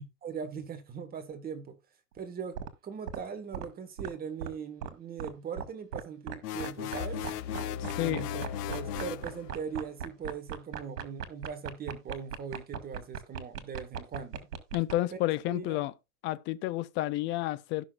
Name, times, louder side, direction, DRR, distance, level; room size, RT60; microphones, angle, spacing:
voice 1, 0.2-1.8 2.1-2.6 2.8-7.3 8.0-14.4 15.1-15.2 15.5-15.8, right 6 dB, 20° right, 1.6 m, -40 dB
sound 1, 2.6-2.7 3.1-3.2 3.5-3.7 4.0-4.1 4.4-4.5 4.8-4.9 5.2-5.3 5.6-5.7 5.9-6.3 6.6-6.7 6.9-14.9, right 8 dB, 80° right, 2.1 m, -37 dB
sound 2, 6.4-9.3, left 12 dB, 80° left, 0.9 m, -38 dB
sound 3, 7.0-10.0, left 6 dB, 50° left, 2.3 m, -40 dB
voice 2, 7.8-8.2 14.7-15.9 16.2-17.8, left 16 dB, 25° left, 0.5 m, -30 dB
16.5 x 6.1 x 2.4 m
hypercardioid pair, 135°, 45 cm